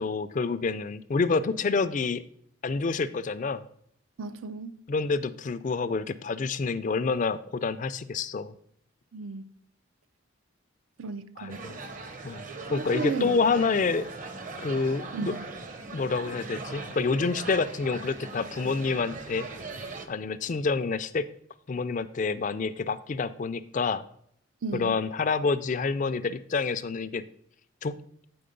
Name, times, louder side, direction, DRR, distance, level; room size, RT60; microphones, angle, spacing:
voice 1, 0.0-2.2 2.6-3.6 4.9-8.5 11.4-11.8 12.2-12.4 12.7-14.1 14.6-15.3 15.9-19.5 20.1-21.3 21.7-24.0 24.7-27.3 27.8-28.0, left 4 dB, 40° left, 0.4 m, -28 dB
voice 2, 4.2-4.8 9.1-9.4 11.0-11.6 12.7-13.4 15.1-15.5 24.6-25.0, right 4 dB, 80° right, 0.6 m, -34 dB
sound 1, 11.5-20.1, right 3 dB, 40° right, 0.7 m, -40 dB
8.6 x 4.3 x 5.2 m
head